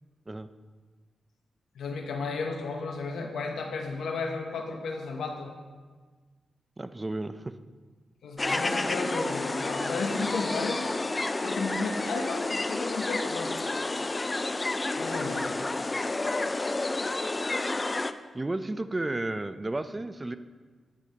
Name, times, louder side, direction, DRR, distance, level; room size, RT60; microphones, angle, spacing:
voice 1, 1.7-5.5 8.2-10.8 11.4-13.5 14.5-14.6 14.9-15.9, left 4 dB, 85° left, 3 dB, 0.8 m, -33 dB
voice 2, 6.8-7.3 18.3-20.4, right 2 dB, 25° right, 11 dB, 0.5 m, -32 dB
sound 1, 8.4-18.1, left 2 dB, 30° left, 0.4 m, -30 dB
10.5 x 8.0 x 2.9 m, 1.4 s
cardioid pair, 60°, 0 cm